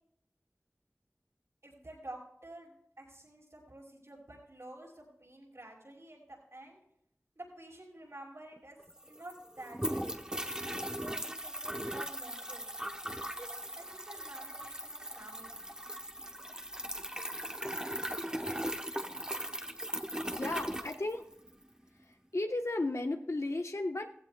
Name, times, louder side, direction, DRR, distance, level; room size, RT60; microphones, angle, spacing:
voice 1, 1.6-6.8 7.3-8.8 9.1-10.1 10.7-12.7 13.3-13.5 13.7-15.7, right 1 dB, 75° right, -3 dB, 5.8 m, -50 dB
sound 1, 8.6-8.7 8.8-21.6, equal, 15° right, 0.9 m, -39 dB
voice 2, 20.3-21.2 22.0-24.1, left 2 dB, 80° left, 4 dB, 1.1 m, -34 dB
17.0 x 15.5 x 2.3 m, 0.72 s
wide cardioid pair, 50°, 5 cm